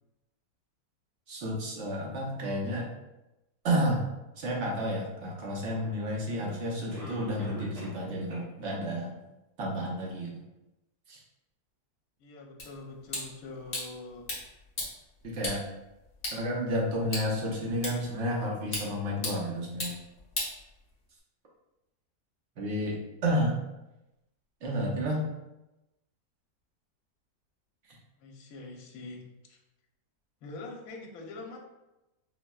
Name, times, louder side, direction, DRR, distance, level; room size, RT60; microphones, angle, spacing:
voice 1, 1.3-2.9 3.6-4.0 4.4-9.1 9.6-10.3 11.1-11.2 15.3-15.6 16.3-19.9 22.6-23.0 23.2-23.6 24.6-25.3, equal, 60° right, -3 dB, 0.8 m, -31 dB
Cough, 5.8-5.9 6.9-8.0 8.3-8.4 9.0-9.1 9.6-9.7, right 1 dB, 85° right, 1.7 m, -44 dB
voice 2, 12.2-14.3 28.2-29.6 30.4-31.6, left 3 dB, 70° left, 1 dB, 1.0 m, -44 dB
sound 1, 12.6-21.2, left 2 dB, 40° left, 0.8 m, -40 dB
4.0 x 2.0 x 2.2 m, 0.96 s
omnidirectional pair, 1.6 m